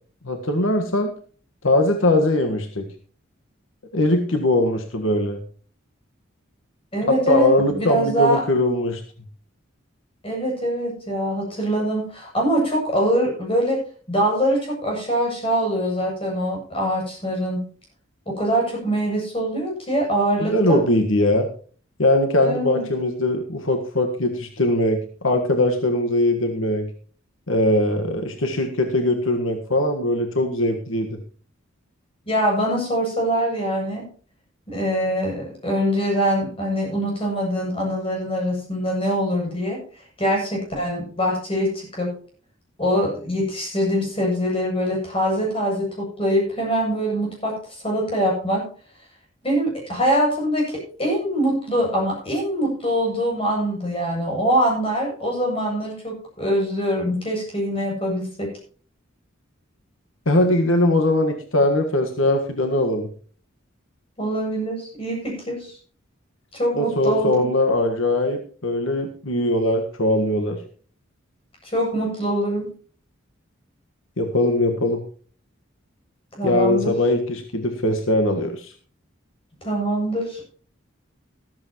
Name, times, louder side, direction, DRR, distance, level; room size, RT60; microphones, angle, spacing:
voice 1, 0.2-1.1 1.6-2.9 3.9-5.4 7.3-9.0 20.4-21.5 22.0-26.9 27.5-31.2 60.2-63.1 66.7-70.6 74.2-75.0 76.4-78.7, left 1 dB, 80° left, 5 dB, 1.6 m, -21 dB
voice 2, 6.9-8.4 10.2-13.8 14.1-17.6 18.3-20.8 22.4-22.8 32.3-34.1 34.7-39.8 40.2-42.1 42.8-47.6 47.8-48.6 49.4-58.5 64.2-65.8 66.5-67.5 71.6-72.7 76.4-76.9 79.6-80.4, equal, 30° left, -1 dB, 7.7 m, -23 dB
14.0 x 14.0 x 3.1 m, 0.42 s
head